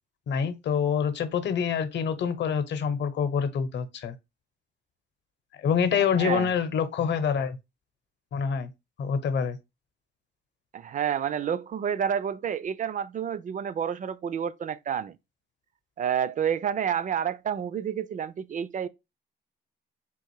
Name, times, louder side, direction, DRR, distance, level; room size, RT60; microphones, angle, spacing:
voice 1, 0.3-4.1 5.6-7.6 8.3-8.7 9.0-9.6, left 7 dB, 65° left, 0.8 m, -26 dB
voice 2, 6.2-6.5 10.7-15.2 16.0-18.9, right 8 dB, 40° right, 0.4 m, -29 dB
3.6 x 2.5 x 4.6 m
cardioid pair, 90°, 20 cm